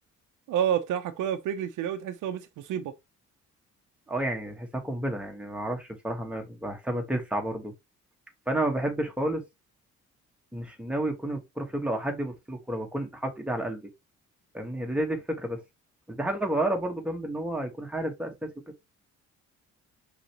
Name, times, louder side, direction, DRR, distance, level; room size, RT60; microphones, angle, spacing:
voice 1, 0.5-2.9, right 9 dB, 80° right, 0.7 m, -29 dB
voice 2, 4.1-7.7 8.5-9.4 10.5-13.9 14.5-15.6 16.1-18.5, right 1 dB, 5° right, 1.5 m, -31 dB
5.2 x 3.3 x 3.0 m
cardioid pair, 90°, 30 cm